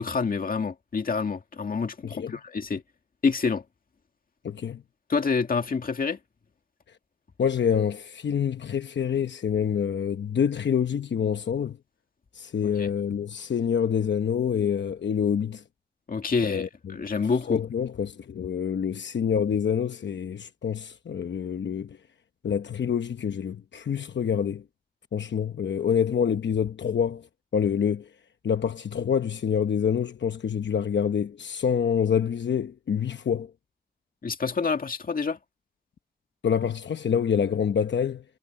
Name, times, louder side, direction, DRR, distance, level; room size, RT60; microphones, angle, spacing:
voice 1, 0.0-2.8 3.2-3.6 5.1-6.2 12.6-12.9 16.1-17.6 34.2-35.4, left 5 dB, 50° left, 1.9 m, -27 dB
voice 2, 2.0-2.4 4.4-4.8 7.4-11.8 12.3-15.6 16.4-17.0 17.5-22.0 22.4-24.6 25.1-27.3 27.5-28.1 28.4-33.5 36.4-38.2, left 7 dB, 80° left, 0.9 m, -26 dB
wide cardioid pair, 145°, 18 cm